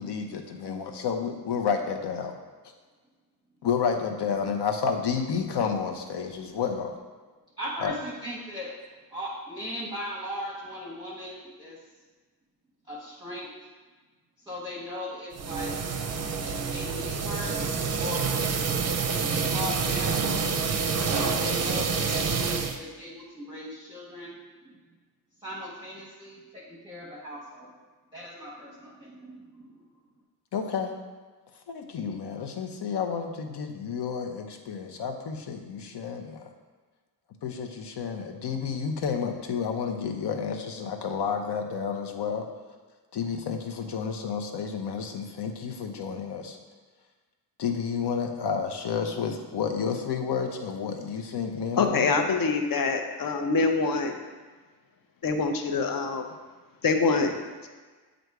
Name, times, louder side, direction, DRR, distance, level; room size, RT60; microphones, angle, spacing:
voice 1, 0.0-2.3 3.6-7.0 7.8-8.0 30.5-31.0 31.7-36.4 37.4-42.5 43.1-46.6 47.6-52.1, left 6 dB, 90° left, 4 dB, 0.7 m, -30 dB
voice 2, 7.6-8.7 9.1-11.8 12.9-13.5 14.4-15.8 16.4-17.6 18.0-18.5 19.1-20.3 21.1-24.8 25.4-27.7 28.1-29.8, equal, 10° right, -6 dB, 0.8 m, -38 dB
sound 1, 15.3-22.8, right 5 dB, 40° right, 0.5 m, -27 dB
voice 3, 51.7-54.1 55.2-56.3 56.8-57.3, left 4 dB, 60° left, 4 dB, 0.7 m, -25 dB
7.8 x 2.6 x 4.6 m, 1.4 s
wide cardioid pair, 145°, 39 cm